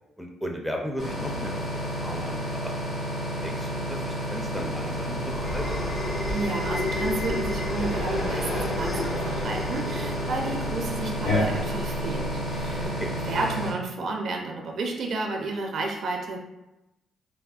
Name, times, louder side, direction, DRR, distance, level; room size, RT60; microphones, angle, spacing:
voice 1, 0.2-2.7 3.4-5.2 5.5-5.8 13.0-13.1, equal, 5° left, 1 dB, 0.4 m, -35 dB
sound 1, 1.0-13.7, equal, 65° left, 1.3 m, -31 dB
sound 2, 5.3-12.9, left 1 dB, 85° left, 1.1 m, -33 dB
sound 3, 5.4-13.3, left 2 dB, 45° left, 0.7 m, -35 dB
voice 2, 6.3-13.0 13.3-16.4, right 3 dB, 65° right, 1 dB, 0.4 m, -31 dB
3.4 x 2.1 x 2.3 m, 0.95 s
cardioid pair, 90°, 0 cm